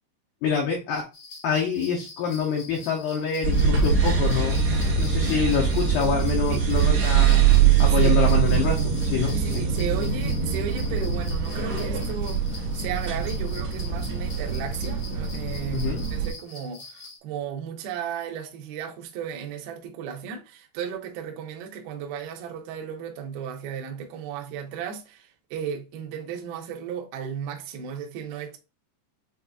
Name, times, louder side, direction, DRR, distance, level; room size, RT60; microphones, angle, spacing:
voice 1, 0.4-1.0 1.4-4.6 5.0-7.4 7.8-9.6 15.7-16.0, left 7 dB, 85° left, 2.0 m, -26 dB
sound 1, 1.1-17.2, left 3 dB, 70° left, 1.5 m, -45 dB
sound 2, 3.4-16.3, right 7 dB, 55° right, 1.4 m, -23 dB
voice 2, 9.3-28.6, right 7 dB, 80° right, 2.2 m, -35 dB
6.8 x 2.5 x 2.3 m
omnidirectional pair, 5.3 m